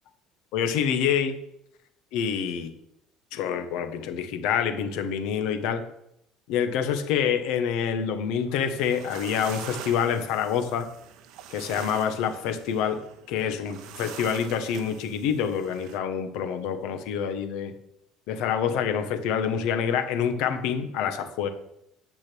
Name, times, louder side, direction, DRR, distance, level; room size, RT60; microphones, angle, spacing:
voice 1, 0.5-1.4 2.1-2.7 3.3-5.8 6.5-10.9 11.5-13.0 13.3-17.7 18.3-21.5, left 8 dB, 70° left, 8 dB, 1.2 m, -27 dB
sound 1, 8.8-16.0, right 9 dB, 65° right, 0.9 m, -44 dB
8.6 x 6.2 x 6.1 m, 0.79 s
hypercardioid pair, 70°, 0 cm